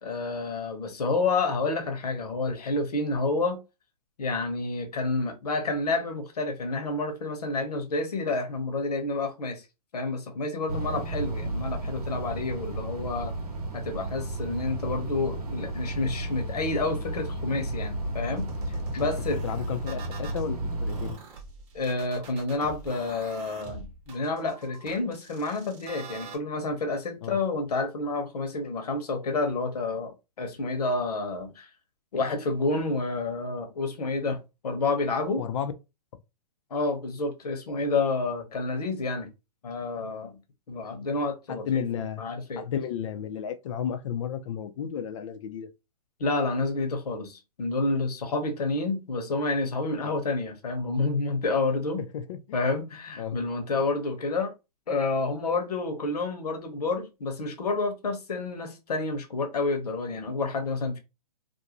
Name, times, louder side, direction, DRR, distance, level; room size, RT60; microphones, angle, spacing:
voice 1, 0.0-3.6 4.2-9.6 9.9-13.3 13.7-18.5 18.9-19.4 21.7-30.1 30.4-31.7 32.1-35.4 36.7-39.3 39.6-40.4 40.7-41.9 42.2-42.6 46.2-52.0 52.5-54.5 54.9-61.0, left 3 dB, 75° left, 1.0 m, -29 dB
sound 1, 10.7-21.1, right 1 dB, 75° right, 0.9 m, -33 dB
sound 2, 18.4-20.4 20.9-26.4, right 5 dB, 30° right, 0.8 m, -45 dB
voice 2, 19.4-21.2 27.2-27.4 35.4-35.7 41.5-42.2 42.6-45.7 50.0-50.1 52.1-52.6 53.2-53.4, left 8 dB, 55° left, 0.5 m, -33 dB
2.6 x 2.2 x 2.9 m
hypercardioid pair, 135°, 20 cm